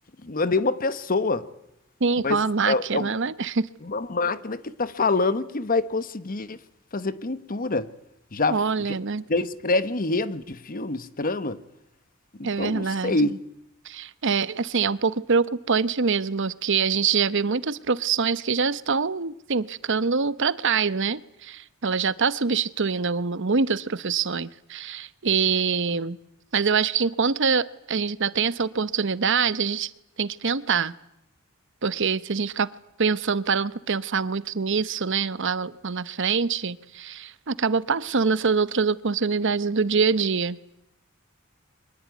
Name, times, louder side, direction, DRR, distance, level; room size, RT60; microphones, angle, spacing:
voice 1, 0.2-1.5 2.2-2.4 2.6-3.1 3.9-6.6 6.9-7.9 8.3-8.6 9.3-11.6 12.4-13.4, left 3 dB, 45° left, 1.1 m, -26 dB
voice 2, 2.0-3.7 8.5-9.2 12.4-13.4 13.8-26.2 26.5-29.9 30.2-30.9 31.8-32.7 33.0-40.6, right 5 dB, 60° right, 0.9 m, -25 dB
24.0 x 20.5 x 9.3 m
head